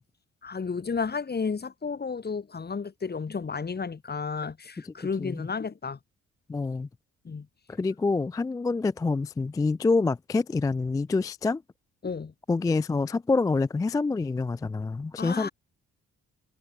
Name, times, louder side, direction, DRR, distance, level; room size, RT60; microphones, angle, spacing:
voice 1, 0.4-6.0 7.2-7.5 12.0-12.3 15.2-15.5, left 5 dB, 35° left, 3.1 m, -32 dB
voice 2, 4.8-5.5 6.5-6.9 7.7-11.6 12.5-15.5, left 3 dB, 10° left, 0.3 m, -27 dB
cardioid pair, 90°, 30 cm